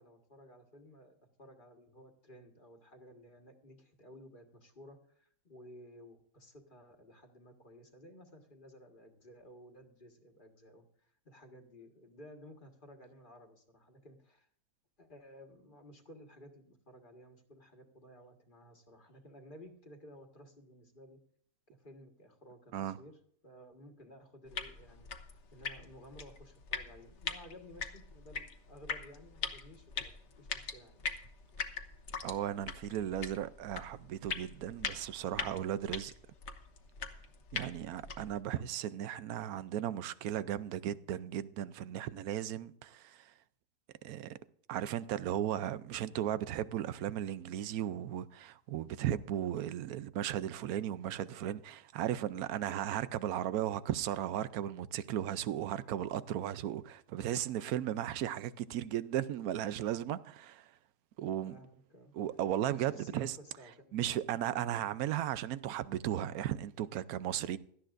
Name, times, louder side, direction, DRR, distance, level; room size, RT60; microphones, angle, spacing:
voice 1, 0.0-14.5 15.0-21.2 21.7-25.1 25.5-31.0 61.5-62.1 62.7-64.0, equal, 35° left, 1.7 m, -55 dB
sound 1, 24.5-38.4, left 5 dB, 55° left, 1.3 m, -42 dB
voice 2, 32.2-36.1 37.5-43.3 44.0-44.4 44.7-60.7 61.2-61.6 62.1-63.4 63.9-67.6, right 11 dB, 80° right, 1.1 m, -36 dB
17.5 x 12.5 x 2.6 m
omnidirectional pair, 1.6 m